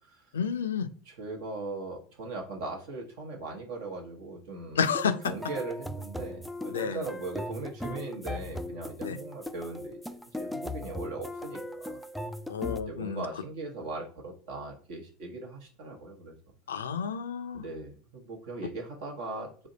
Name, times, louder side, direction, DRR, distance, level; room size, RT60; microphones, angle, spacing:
voice 1, 0.3-0.9 4.8-5.2 6.7-7.1 9.0-9.2 12.5-13.3 16.7-17.6, left 6 dB, 90° left, 10 dB, 0.4 m, -30 dB
voice 2, 1.1-4.8 5.3-12.0 12.9-16.3 17.5-19.7, right 3 dB, 70° right, 2 dB, 1.0 m, -39 dB
sound 1, 4.8-12.8, left 1 dB, ahead, 0.3 m, -38 dB
3.4 x 2.2 x 3.9 m, 0.40 s
hypercardioid pair, 90°, 0 cm